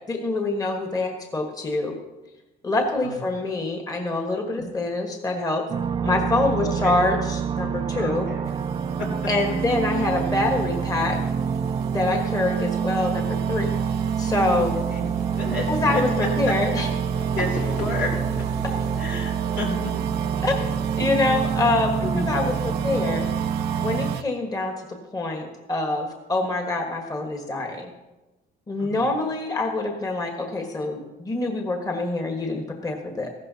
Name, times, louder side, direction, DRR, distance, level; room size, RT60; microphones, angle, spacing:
voice 1, 0.0-1.9 2.6-5.6 6.0-8.3 9.3-11.2 11.9-13.7 14.2-14.8 15.7-16.0 16.3-16.9 20.4-20.5 21.0-21.9 22.3-23.3 23.8-24.7 25.1-27.9 28.7-33.3, left 2 dB, 20° left, 3 dB, 1.5 m, -25 dB
sound 1, 5.7-24.2, right 7 dB, 30° right, 0.4 m, -26 dB
voice 2, 6.6-7.0 8.0-8.5 9.0-9.3 14.5-15.1 15.4-15.7 15.9-16.5 17.3-18.1 19.0-19.9 22.0-22.3 28.8-29.1, left 2 dB, 80° left, 0 dB, 3.2 m, -31 dB
sound 2, 8.4-24.2, right 8 dB, 75° right, 0.7 m, -35 dB
sound 3, 14.7-20.8, left 3 dB, 55° left, 2.3 m, -41 dB
15.0 x 12.5 x 2.8 m, 1.1 s
cardioid pair, 110°, 17 cm